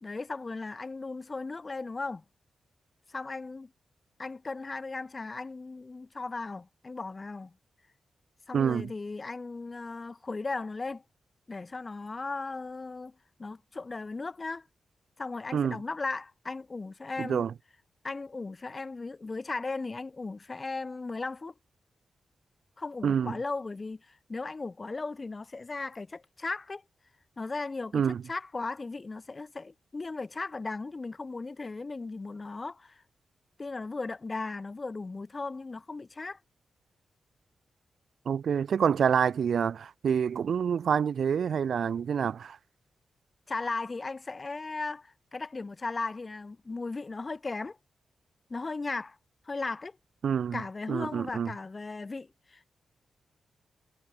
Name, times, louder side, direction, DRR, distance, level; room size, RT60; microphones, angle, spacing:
voice 1, 0.0-2.2 3.1-3.7 4.2-7.5 8.5-11.0 11.5-13.1 13.4-14.7 15.2-17.4 18.0-21.5 22.8-26.8 27.4-28.0 28.3-33.0 33.6-36.4 43.5-47.8 48.5-49.2 49.5-50.0 50.5-52.7, left 3 dB, 35° left, 2.2 m, -37 dB
voice 2, 8.5-8.9 15.5-15.8 17.2-17.5 23.0-23.3 27.9-28.2 38.2-42.6 50.2-50.6 50.9-51.5, right 7 dB, 75° right, 3.2 m, -27 dB
cardioid pair, 75°, 0 cm